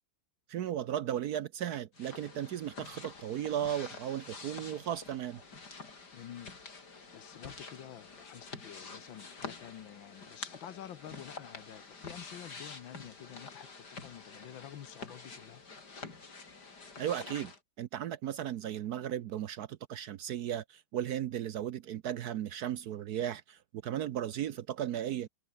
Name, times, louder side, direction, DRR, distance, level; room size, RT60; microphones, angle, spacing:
voice 1, 0.5-5.4 17.0-17.5 17.8-25.3, right 10 dB, 65° right, 1.1 m, -36 dB
sound 1, 1.9-17.6, left 4 dB, 55° left, 4.1 m, -48 dB
voice 2, 6.1-6.5 6.9-15.6, left 11 dB, 80° left, 1.8 m, -49 dB
omnidirectional pair, 2.1 m